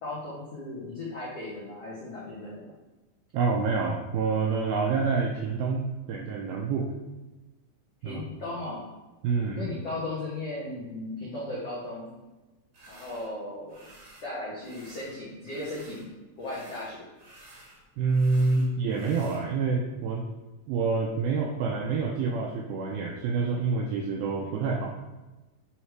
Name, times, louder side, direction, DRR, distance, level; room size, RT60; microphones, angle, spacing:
voice 1, 0.0-2.7 8.0-8.9 9.5-12.1 12.9-13.9 14.2-16.1 16.4-17.1, left 2 dB, 85° left, -7 dB, 1.3 m, -36 dB
voice 2, 3.3-6.9 8.0-8.2 9.2-9.7 18.0-20.3 20.7-25.0, right 4 dB, 85° right, 1 dB, 2.1 m, -27 dB
sound 1, 12.7-13.3 13.7-14.3 14.6-16.1 16.4-19.4, right 1 dB, 65° right, 1.3 m, -52 dB
8.5 x 3.3 x 4.6 m, 1.1 s
omnidirectional pair, 4.9 m